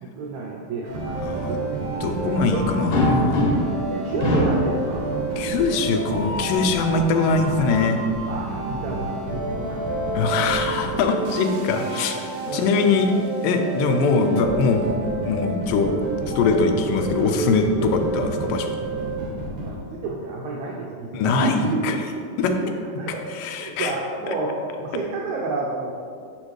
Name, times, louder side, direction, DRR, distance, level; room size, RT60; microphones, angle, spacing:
voice 1, 0.0-1.7 2.2-2.7 3.9-5.1 8.3-10.3 12.4-12.6 13.8-13.9 19.0-19.3 19.6-22.0 23.0-23.2 23.6-24.5 24.8-25.9, right 3 dB, 80° right, -3 dB, 1.6 m, -30 dB
sound 1, 0.8-19.7, right 2 dB, 65° right, 1.4 m, -29 dB
voice 2, 1.2-1.6 2.0-3.5 5.4-8.0 10.1-13.1 13.4-15.9 16.4-18.7 21.1-21.9 22.4-22.5 23.4-23.9 24.3-24.4, left 4 dB, 85° left, 5 dB, 2.2 m, -22 dB
sound 2, 2.9-3.8 4.2-4.7 5.9-6.7 9.3-10.4 11.8-12.0 12.3-12.4 14.0-15.2, left 1 dB, 65° left, 1.7 m, -26 dB
6.4 x 6.2 x 3.1 m, 2.3 s
omnidirectional pair, 4.0 m